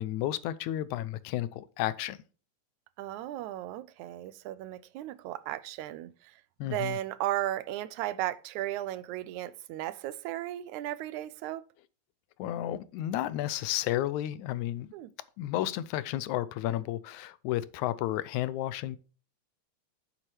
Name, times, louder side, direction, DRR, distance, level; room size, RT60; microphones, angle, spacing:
voice 1, 0.0-2.2 6.6-7.0 12.4-14.9 15.4-19.0, left 13 dB, 80° left, 2.0 m, -32 dB
voice 2, 3.0-11.6 14.9-15.1, right 14 dB, 85° right, 2.0 m, -35 dB
9.0 x 7.7 x 3.2 m
omnidirectional pair, 3.4 m